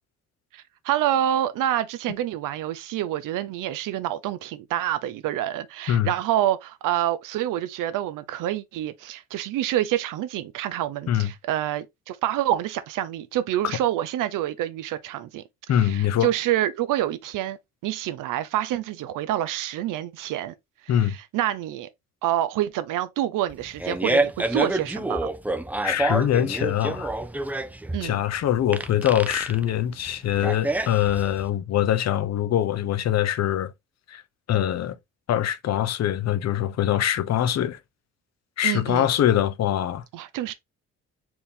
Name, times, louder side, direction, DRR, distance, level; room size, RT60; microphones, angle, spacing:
voice 1, 0.5-15.4 15.7-17.6 17.8-20.5 20.9-21.9 22.2-25.3 27.9-28.2 38.6-39.1 40.1-40.5, right 12 dB, 85° right, 0.6 m, -27 dB
voice 2, 15.7-16.3 20.9-21.2 25.8-27.1 28.0-33.7 34.1-34.2 34.5-35.0 35.3-37.8 38.6-40.0, left 11 dB, 55° left, 0.6 m, -23 dB
Fart, 23.5-31.5, right 2 dB, 5° right, 0.5 m, -27 dB
4.4 x 2.7 x 3.5 m
cardioid pair, 90°, 31 cm